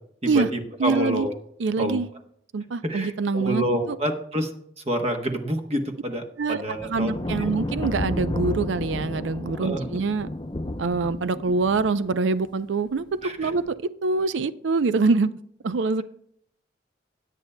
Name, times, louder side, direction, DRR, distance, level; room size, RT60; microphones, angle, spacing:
voice 1, 0.2-1.3 1.8-2.0 2.8-4.5 4.8-7.5 9.6-9.9 13.2-13.5, equal, 35° right, 4 dB, 1.0 m, -28 dB
voice 2, 0.8-1.3 1.6-2.1 2.5-4.0 6.4-6.6 6.9-10.3 10.8-15.3 15.6-16.0, right 4 dB, 90° right, 14 dB, 0.5 m, -25 dB
sound 1, 6.8-12.2 13.4-13.7, left 1 dB, 25° left, 0.5 m, -32 dB
17.5 x 8.3 x 2.2 m, 0.67 s
head